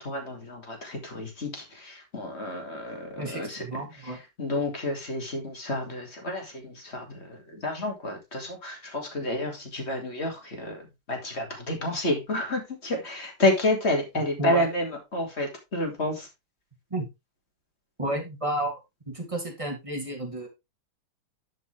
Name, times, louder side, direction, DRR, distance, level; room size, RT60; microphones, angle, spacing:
voice 1, 0.0-3.6 4.4-7.0 7.6-10.8 11.1-16.3, left 1 dB, 30° left, 2.6 m, -29 dB
voice 2, 3.2-4.2 14.1-14.7 16.9-17.1 18.0-18.8 19.1-20.5, right 1 dB, 15° right, 2.2 m, -32 dB
11.5 x 5.3 x 3.3 m
omnidirectional pair, 2.3 m